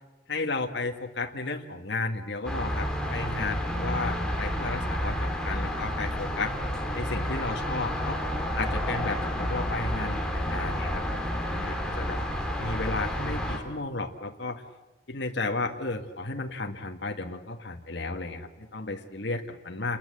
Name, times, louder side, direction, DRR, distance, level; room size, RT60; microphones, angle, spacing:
voice 1, 0.3-6.6 6.9-8.2 8.5-12.2 12.6-14.6 15.1-20.0, left 3 dB, 65° left, 3 dB, 1.7 m, -33 dB
sound 1, 2.4-13.6, equal, 5° left, 3.3 m, -30 dB
28.5 x 21.5 x 7.9 m, 1.2 s
head